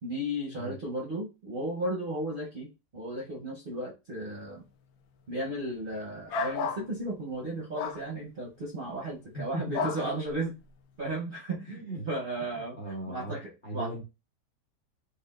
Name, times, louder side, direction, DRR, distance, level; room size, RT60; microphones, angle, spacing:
voice 1, 0.0-4.6 5.3-10.5 11.0-12.8 13.1-14.0, right 1 dB, 50° right, -2 dB, 0.6 m, -35 dB
sound 1, 6.3-6.8 7.7-8.0 9.7-10.0, left 5 dB, 70° left, 1.0 m, -31 dB
voice 2, 9.3-9.8 11.7-12.1 12.8-13.4 13.6-14.0, right 1 dB, 40° left, -1 dB, 0.8 m, -37 dB
4.8 x 2.7 x 2.3 m, 0.27 s
omnidirectional pair, 1.8 m